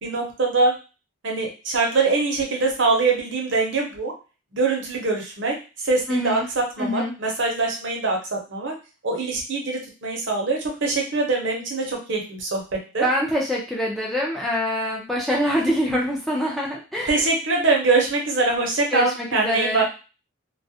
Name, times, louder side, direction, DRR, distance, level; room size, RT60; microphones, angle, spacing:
voice 1, 0.0-0.7 1.2-4.1 4.5-8.7 9.0-12.6 12.9-13.1 17.1-19.8, right 3 dB, 65° right, 0 dB, 0.7 m, -23 dB
voice 2, 6.1-6.5 6.8-7.1 13.0-17.2 18.9-19.8, equal, ahead, -4 dB, 0.4 m, -25 dB
2.3 x 2.1 x 2.6 m, 0.32 s
head